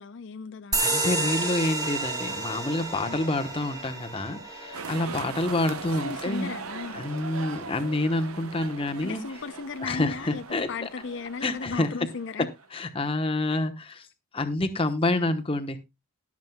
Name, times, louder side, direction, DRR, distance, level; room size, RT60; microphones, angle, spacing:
voice 1, 0.0-1.0 3.0-3.2 5.2-5.3 6.0-7.1 9.0-12.5, left 4 dB, 60° left, 0.5 m, -36 dB
sound 1, 0.7-7.8, right 2 dB, 20° right, 2.4 m, -32 dB
voice 2, 0.8-6.5 6.9-9.2 9.8-10.9 11.4-11.9 12.7-14.1 14.3-15.8, left 2 dB, 25° left, 1.0 m, -28 dB
sound 2, 4.7-12.8, right 5 dB, 85° right, 0.9 m, -40 dB
20.0 x 7.4 x 2.2 m
head